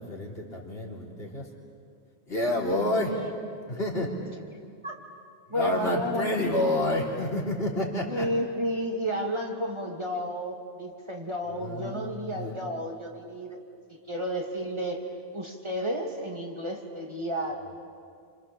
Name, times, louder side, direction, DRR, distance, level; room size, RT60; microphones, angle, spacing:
voice 1, 0.0-1.5 2.3-3.2 3.7-4.2 5.5-8.3 11.6-12.6, left 1 dB, 65° left, -2 dB, 3.9 m, -29 dB
voice 2, 5.5-6.7 8.1-13.6 13.9-17.8, equal, 25° right, 0 dB, 2.6 m, -32 dB
29.5 x 26.5 x 7.1 m, 2.3 s
omnidirectional pair, 1.1 m